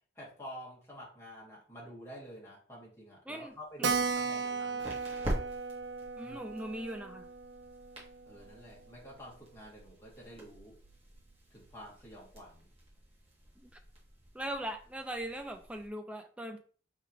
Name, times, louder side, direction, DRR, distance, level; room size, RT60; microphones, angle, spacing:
voice 1, 0.2-4.9 6.2-6.4 8.3-10.8 11.5-12.7, equal, 15° left, -5 dB, 1.7 m, -49 dB
voice 2, 3.3-3.9 6.2-7.3 13.6-13.7 14.3-16.6, right 1 dB, 5° right, 5 dB, 0.4 m, -40 dB
sound 1, 3.5-15.9, equal, 30° right, 1.5 m, -46 dB
Keyboard (musical), 3.8-8.9 9.2-9.3 9.5-9.6 9.9-10.0 10.6-10.9, right 5 dB, 70° right, 0.4 m, -36 dB
4.6 x 3.7 x 3.1 m, 0.42 s
head